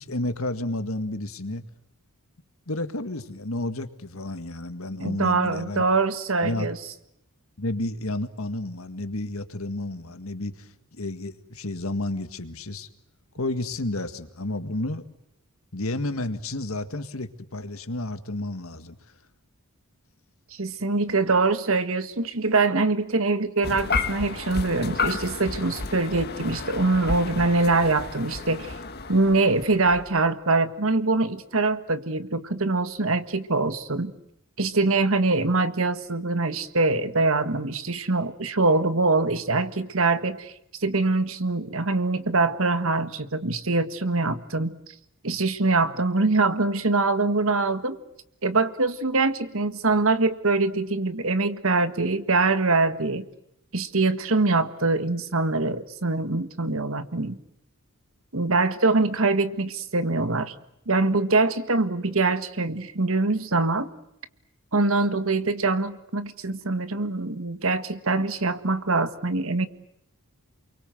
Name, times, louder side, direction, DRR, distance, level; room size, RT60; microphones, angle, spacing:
voice 1, 0.0-1.6 2.7-5.8 6.4-6.7 7.6-12.9 13.4-15.0 15.7-19.0, left 2 dB, 70° left, 10 dB, 1.9 m, -31 dB
voice 2, 5.0-6.8 20.6-28.7 29.1-34.1 34.6-40.5 40.8-44.7 45.2-48.0 48.4-53.3 53.7-57.4 58.3-60.5 60.9-63.9 64.7-69.7, right 3 dB, 65° right, 11 dB, 1.7 m, -23 dB
sound 1, 23.6-30.2, left 4 dB, 50° left, 1.9 m, -32 dB
29.5 x 23.0 x 7.9 m, 0.79 s
head